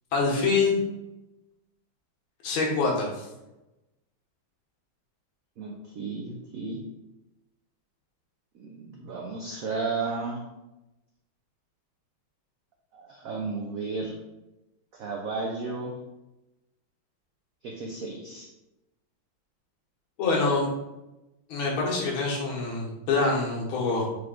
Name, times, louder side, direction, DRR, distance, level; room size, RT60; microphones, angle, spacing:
voice 1, 0.1-0.8 2.4-3.3 20.2-20.7 21.5-24.1, left 3 dB, 85° left, -2 dB, 1.9 m, -25 dB
voice 2, 5.6-6.8 8.5-10.4 12.9-14.1 14.9-15.9 17.6-18.5, right 4 dB, 90° right, 1 dB, 0.7 m, -33 dB
4.5 x 3.1 x 3.7 m, 0.98 s
omnidirectional pair, 2.2 m